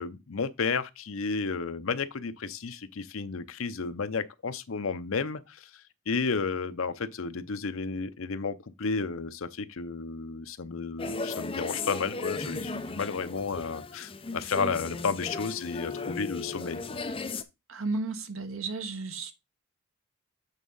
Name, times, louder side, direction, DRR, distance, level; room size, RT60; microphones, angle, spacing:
voice 1, 0.0-17.0, left 4 dB, 70° left, 0.7 m, -32 dB
sound 1, 11.0-17.4, left 3 dB, 25° left, 0.6 m, -36 dB
voice 2, 17.7-19.3, right 3 dB, 70° right, 1.0 m, -33 dB
8.3 x 3.6 x 5.4 m
head